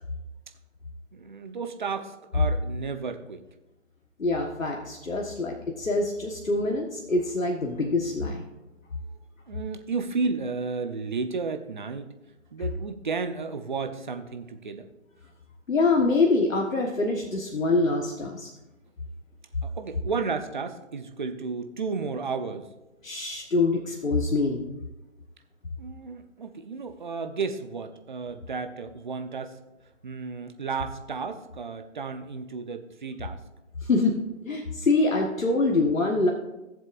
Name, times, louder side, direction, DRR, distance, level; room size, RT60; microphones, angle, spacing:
voice 1, 1.1-3.4 9.5-12.1 12.5-14.9 19.6-22.7 25.8-29.6 30.0-33.4, right 4 dB, 40° right, 8 dB, 0.8 m, -33 dB
voice 2, 4.2-8.4 15.7-18.5 23.0-24.6 33.8-34.2 34.4-36.3, left 3 dB, 85° left, 0 dB, 1.5 m, -25 dB
16.5 x 7.4 x 2.6 m, 1.0 s
figure-of-eight pair, 155°, 39 cm